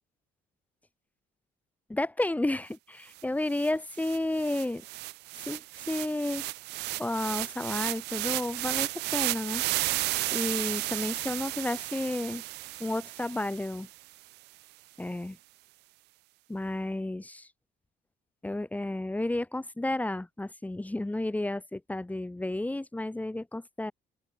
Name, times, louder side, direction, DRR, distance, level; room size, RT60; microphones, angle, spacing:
voice 1, 1.9-4.8 5.4-6.5 7.0-9.6 10.3-12.4 12.8-13.9 15.0-15.4 16.5-17.5 18.4-23.9, left 1 dB, 10° left, 2.5 m, -32 dB
sound 1, 3.2-3.3 3.5-13.9, right 20 dB, 85° right, 0.7 m, -33 dB
open air
cardioid pair, 110°, 17 cm